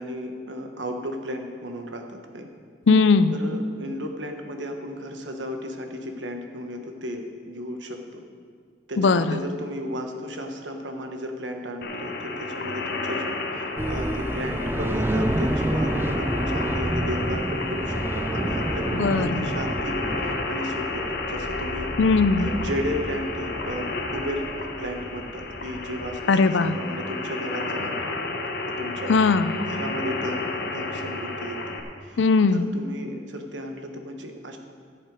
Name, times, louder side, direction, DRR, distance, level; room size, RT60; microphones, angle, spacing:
voice 1, 0.0-2.5 3.3-8.2 8.9-20.0 20.2-21.9 22.4-28.2 28.8-29.1 29.6-31.7 32.0-32.2 32.5-34.6, equal, 90° right, 4 dB, 1.2 m, -34 dB
voice 2, 2.9-3.3 9.0-9.4 19.0-19.5 22.0-22.5 26.3-26.7 29.1-29.5 32.2-32.6, left 4 dB, 90° left, 12 dB, 0.5 m, -19 dB
sound 1, 11.8-31.8, left 2 dB, 55° left, 1.1 m, -31 dB
sound 2, 13.8-26.2, right 1 dB, 15° right, 0.4 m, -30 dB
14.0 x 7.9 x 4.8 m, 2.1 s
head